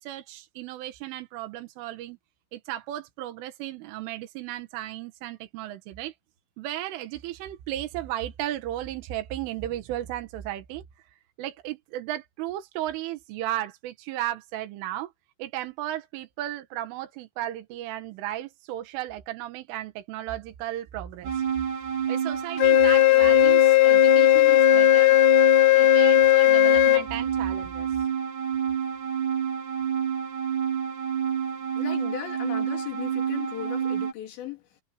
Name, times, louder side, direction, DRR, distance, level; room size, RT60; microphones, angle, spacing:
voice 1, 0.0-2.2 2.5-6.1 6.6-10.8 11.4-15.1 15.4-21.4 22.1-25.2 25.8-28.0, right 13 dB, 85° right, 4.1 m, -35 dB
sound 1, 21.2-34.1, right 8 dB, 45° right, 4.5 m, -29 dB
Wind instrument woodwind instrument, 22.6-27.0, left 19 dB, 85° left, 3.5 m, -17 dB
voice 2, 31.8-34.6, left 11 dB, 65° left, 4.6 m, -36 dB
omnidirectional pair, 5.6 m